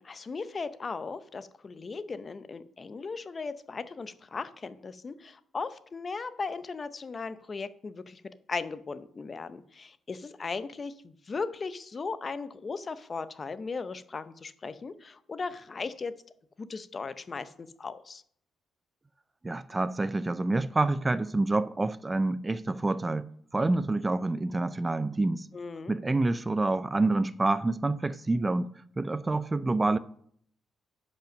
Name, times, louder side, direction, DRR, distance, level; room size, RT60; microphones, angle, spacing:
voice 1, 0.0-16.1 16.6-18.2 25.5-25.9, left 4 dB, 35° left, 0.6 m, -37 dB
voice 2, 19.4-25.5 25.9-28.7 29.0-30.0, right 2 dB, 20° right, 0.3 m, -27 dB
10.5 x 5.3 x 6.1 m
cardioid pair, 105°, 0 cm